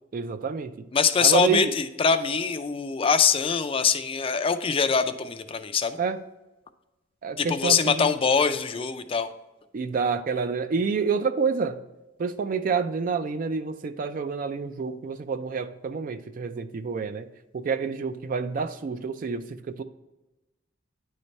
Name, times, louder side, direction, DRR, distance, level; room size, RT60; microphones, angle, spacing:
voice 1, 0.1-0.9 1.2-1.8 6.0-6.2 7.2-8.1 9.7-11.8 12.2-17.3 17.5-19.8, right 5 dB, 45° right, 10 dB, 0.3 m, -28 dB
voice 2, 0.9-6.0 7.4-9.3, left 6 dB, 30° left, 10 dB, 0.4 m, -23 dB
9.6 x 3.2 x 4.0 m, 1.0 s
head